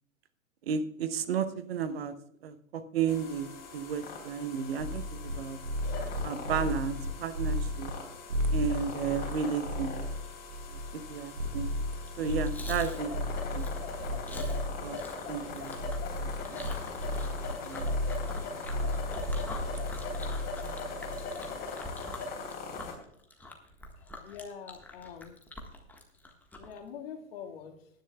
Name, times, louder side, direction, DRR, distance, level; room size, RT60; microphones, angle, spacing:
voice 1, 0.7-2.1 2.4-5.6 6.2-7.9 8.5-10.0 10.7-11.7 12.2-13.1 13.5-13.7 14.8-15.0 15.3-15.7 16.5-16.7 17.7-17.9, right 6 dB, 50° right, 11 dB, 1.0 m, -33 dB
sound 1, 3.1-22.9, left 4 dB, 25° left, 3.6 m, -41 dB
sound 2, 4.8-5.4 5.6-7.9 8.3-15.0 15.3-17.5 17.8-21.5, left 1 dB, 70° right, 1.6 m, -34 dB
Chewing mastication, 12.0-26.8, left 1 dB, 5° left, 1.5 m, -46 dB
voice 2, 24.0-25.4 26.6-27.9, left 7 dB, 45° left, 4 dB, 2.0 m, -44 dB
19.5 x 10.5 x 2.3 m, 0.70 s
figure-of-eight pair, 115°, 40 cm